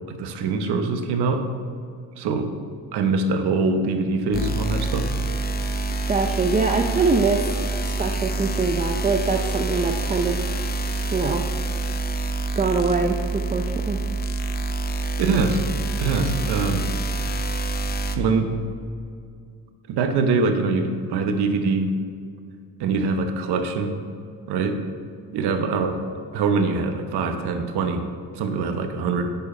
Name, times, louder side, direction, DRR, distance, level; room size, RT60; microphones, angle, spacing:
voice 1, 0.1-1.4 2.2-2.5 2.9-5.1 15.0-15.6 16.0-16.9 18.2-18.5 19.9-21.9 22.8-23.9 24.5-24.8 25.3-26.0 26.3-28.1 28.3-29.3, right 4 dB, 70° right, 6 dB, 1.0 m, -23 dB
sound 1, 4.3-18.2, right 2 dB, 25° left, 0.6 m, -26 dB
voice 2, 6.1-7.4 7.8-10.7 11.1-11.5 12.6-14.0, right 4 dB, 20° right, 3 dB, 0.5 m, -23 dB
10.5 x 4.6 x 4.3 m, 2.3 s
cardioid pair, 105°, 41 cm